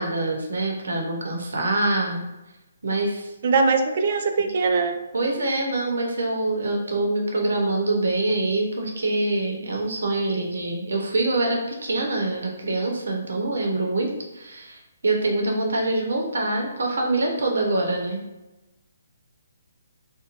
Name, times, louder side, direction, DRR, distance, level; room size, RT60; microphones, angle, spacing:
voice 1, 0.0-2.2 2.8-3.3 5.1-18.2, right 2 dB, 80° right, 1 dB, 0.7 m, -25 dB
voice 2, 3.4-5.0, right 4 dB, 45° right, 6 dB, 0.3 m, -21 dB
2.6 x 2.1 x 2.9 m, 1.0 s
hypercardioid pair, 160°, 0 cm